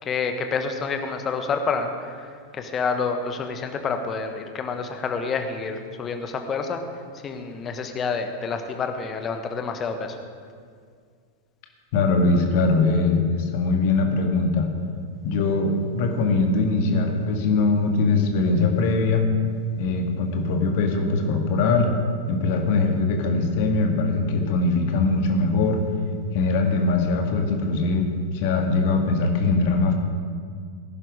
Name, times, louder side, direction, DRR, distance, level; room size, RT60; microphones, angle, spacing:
voice 1, 0.0-6.8 7.2-10.2, left 5 dB, 25° left, 6 dB, 1.3 m, -28 dB
voice 2, 11.9-14.7 15.2-19.2 19.8-21.9 22.3-25.8 26.3-29.9, left 3 dB, 50° left, 4 dB, 1.8 m, -21 dB
18.5 x 11.0 x 4.9 m, 2.1 s
figure-of-eight pair, 90°, 0 cm